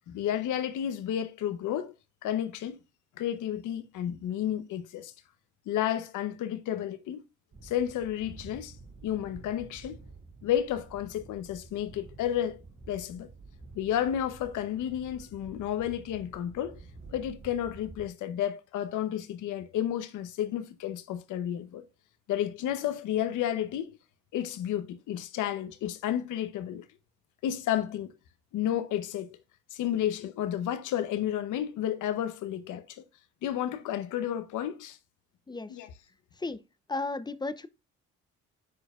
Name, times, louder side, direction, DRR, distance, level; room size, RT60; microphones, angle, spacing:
voice 1, 0.1-1.9 2.2-2.8 3.2-5.1 5.7-7.2 7.6-8.7 9.0-10.0 10.4-12.6 12.9-13.3 13.7-16.8 17.1-21.8 22.3-23.9 24.3-26.8 27.4-28.1 28.5-29.4 29.7-33.0 33.4-35.0 35.7-35.9, left 10 dB, 85° left, 0.9 m, -31 dB
sound 1, 7.5-18.1, right 3 dB, 60° right, 3.2 m, -50 dB
voice 2, 36.9-37.7, left 3 dB, 15° left, 0.6 m, -34 dB
9.7 x 4.5 x 2.4 m
cardioid pair, 90°, 30 cm